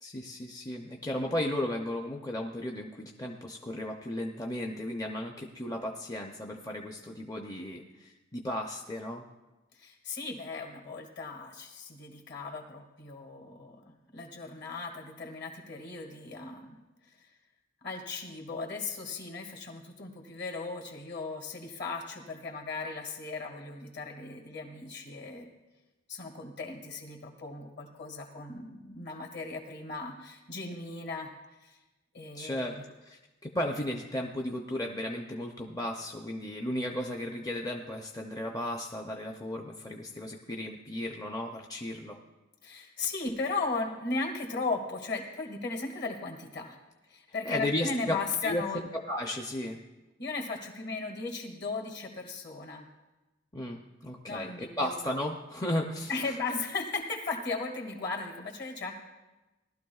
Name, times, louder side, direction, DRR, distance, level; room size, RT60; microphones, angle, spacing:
voice 1, 0.0-9.2 32.3-32.7 33.1-42.2 47.5-48.2 48.4-48.6 49.1-49.8 53.5-54.5 54.8-56.1, left 1 dB, 20° left, 1 dB, 0.6 m, -35 dB
voice 2, 9.7-16.8 17.1-17.3 17.8-25.5 26.1-31.3 31.6-31.8 32.1-32.9 42.6-46.8 47.1-48.8 50.2-52.9 54.3-55.0 56.1-58.9, left 3 dB, 55° left, 2 dB, 2.0 m, -37 dB
18.5 x 12.5 x 2.4 m, 1.1 s
head